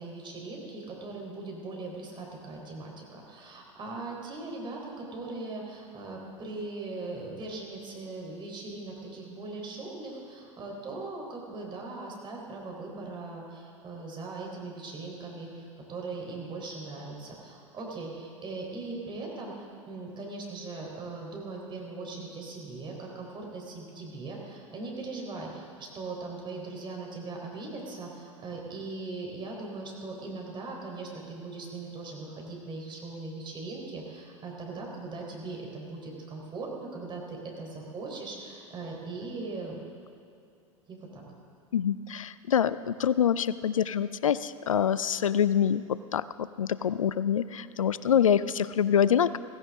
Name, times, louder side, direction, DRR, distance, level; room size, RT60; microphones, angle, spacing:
voice 1, 0.0-19.5 19.9-39.8 40.9-41.2, right 3 dB, 30° right, -1 dB, 3.9 m, -39 dB
voice 2, 41.7-45.8 46.1-49.4, left 8 dB, 85° left, 16 dB, 0.4 m, -25 dB
16.0 x 16.0 x 3.6 m, 2.5 s
hypercardioid pair, 90°, 17 cm